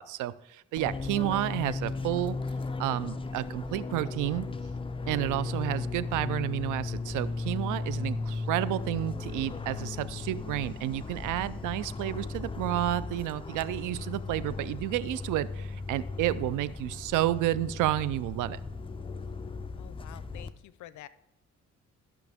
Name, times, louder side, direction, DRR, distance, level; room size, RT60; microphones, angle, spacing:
voice 1, 0.0-2.4 2.8-4.5 5.1-18.6, right 14 dB, 85° right, 17 dB, 0.5 m, -31 dB
Fixed-wing aircraft airplane, 0.8-20.5, left 3 dB, 20° left, 0.5 m, -36 dB
voice 2, 19.8-21.1, left 14 dB, 75° left, 17 dB, 0.5 m, -48 dB
13.0 x 5.9 x 3.5 m, 0.87 s
cardioid pair, 90°, 30 cm